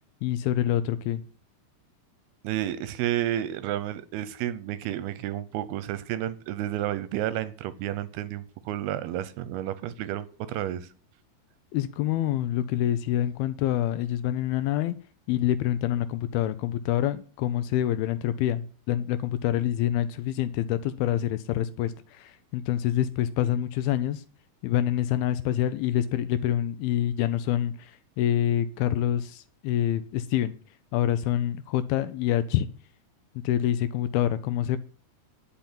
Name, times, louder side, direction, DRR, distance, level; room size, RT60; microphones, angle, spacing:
voice 1, 0.2-1.2 11.7-15.0 15.3-24.2 24.6-30.5 30.9-32.7 33.4-34.8, left 12 dB, 80° left, 2.3 m, -26 dB
voice 2, 2.4-10.9, right 12 dB, 80° right, 2.4 m, -31 dB
10.5 x 5.7 x 8.7 m
omnidirectional pair, 4.8 m